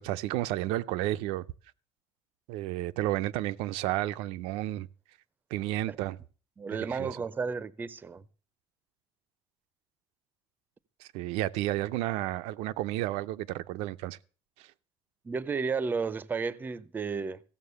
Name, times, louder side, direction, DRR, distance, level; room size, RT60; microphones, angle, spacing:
voice 1, 0.0-1.4 2.5-4.9 5.5-6.2 6.7-7.1 11.0-14.2, right 15 dB, 90° right, 0.5 m, -32 dB
voice 2, 6.6-8.2 15.2-17.4, right 5 dB, 20° right, 0.5 m, -33 dB
15.0 x 7.1 x 6.7 m
cardioid pair, 155°, 10 cm